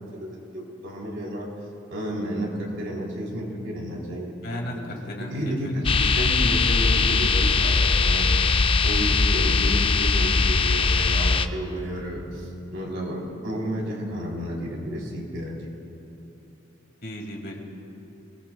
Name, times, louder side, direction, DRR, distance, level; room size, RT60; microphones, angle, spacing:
voice 1, 0.0-1.5 1.9-4.8 5.3-8.5 8.8-15.7, equal, 80° right, -3 dB, 3.6 m, -32 dB
voice 2, 4.4-6.1 17.0-17.6, left 1 dB, 55° left, 0 dB, 2.4 m, -35 dB
sound 1, 5.8-11.5, left 4 dB, 25° left, 0.4 m, -21 dB
25.0 x 19.5 x 2.3 m, 2.9 s
head